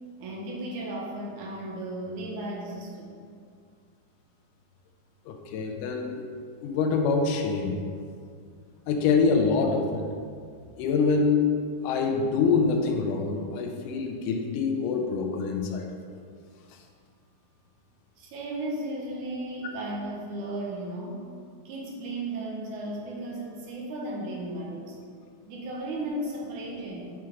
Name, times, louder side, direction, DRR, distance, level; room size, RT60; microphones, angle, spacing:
voice 1, 0.2-3.2 18.2-21.2 21.7-25.0 25.5-27.1, right 1 dB, 75° right, -2 dB, 2.2 m, -35 dB
voice 2, 5.3-6.2 6.6-7.8 8.9-10.1 10.8-11.5 11.8-15.9, left 4 dB, 90° left, 3 dB, 2.3 m, -25 dB
7.4 x 4.5 x 3.6 m, 2.1 s
omnidirectional pair, 3.7 m